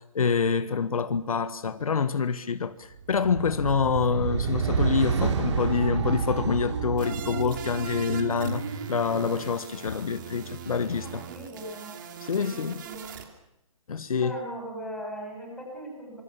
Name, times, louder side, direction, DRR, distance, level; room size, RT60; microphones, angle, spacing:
voice 1, 0.0-8.6 8.9-11.2 12.2-12.8 13.9-14.3, left 5 dB, 80° left, 1.6 m, -26 dB
sound 1, 3.0-9.5, right 5 dB, 55° right, 3.2 m, -29 dB
sound 2, 7.0-13.2, right 9 dB, 35° right, 3.0 m, -42 dB
voice 2, 11.0-11.9 12.3-13.2 14.2-16.2, equal, 5° left, 7.0 m, -39 dB
26.0 x 25.0 x 7.2 m
hypercardioid pair, 170°, 18 cm